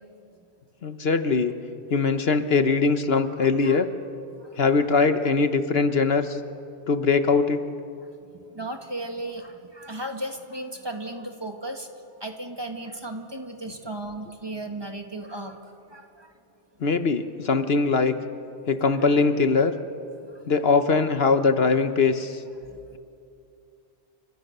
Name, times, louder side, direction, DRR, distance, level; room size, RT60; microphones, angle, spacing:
voice 1, 0.8-1.5 1.9-3.9 4.6-6.4 6.9-7.6 16.8-18.2 18.7-19.7 20.5-22.4, left 4 dB, 60° left, 9 dB, 1.2 m, -21 dB
voice 2, 3.4-3.8 4.4-4.7 8.0-11.9 12.2-16.3 20.3-20.4, right 1 dB, 20° right, 4 dB, 1.8 m, -36 dB
29.0 x 25.5 x 6.7 m, 2.6 s
omnidirectional pair, 1.2 m